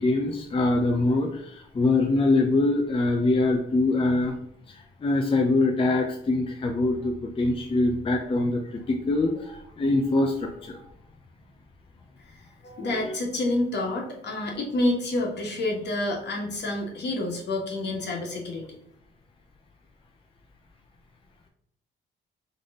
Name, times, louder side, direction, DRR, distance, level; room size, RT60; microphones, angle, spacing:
voice 1, 0.0-4.3 5.0-10.8 12.9-13.2, left 2 dB, 25° left, 2 dB, 0.7 m, -24 dB
voice 2, 12.6-18.6, left 2 dB, 60° left, 0 dB, 1.5 m, -28 dB
4.2 x 3.4 x 3.8 m, 0.73 s
cardioid pair, 90°, 20 cm